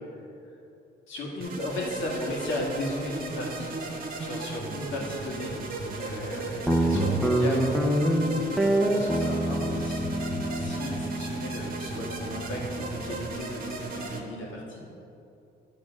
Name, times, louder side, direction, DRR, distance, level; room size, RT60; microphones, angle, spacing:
voice 1, 1.1-3.7 4.2-5.6 5.9-7.9 8.9-10.1 10.5-14.9, left 1 dB, 75° left, -3 dB, 2.1 m, -35 dB
sound 1, 1.4-14.2, right 3 dB, 45° right, 1.3 m, -36 dB
Guitar, 6.7-13.4, right 1 dB, ahead, 0.8 m, -27 dB
10.0 x 3.8 x 6.3 m, 2.8 s
cardioid pair, 90°, 20 cm